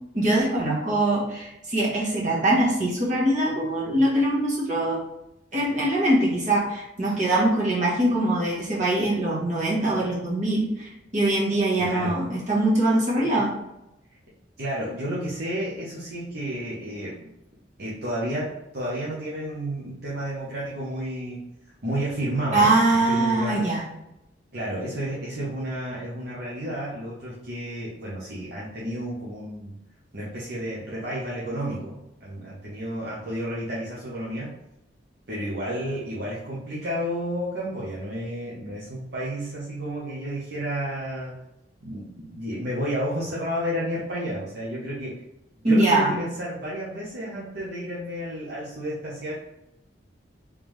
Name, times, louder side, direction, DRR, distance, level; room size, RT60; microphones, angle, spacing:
voice 1, 0.1-5.0 5.5-10.7 11.1-13.5 22.5-23.8 45.6-46.1, right 1 dB, 40° right, -5 dB, 1.3 m, -22 dB
voice 2, 11.8-12.2 14.6-17.2 17.8-21.4 21.8-23.7 24.5-29.7 30.1-34.6 35.3-41.3 41.8-45.2 45.6-49.4, equal, 60° right, -7 dB, 0.9 m, -31 dB
3.5 x 3.3 x 3.2 m, 0.88 s
head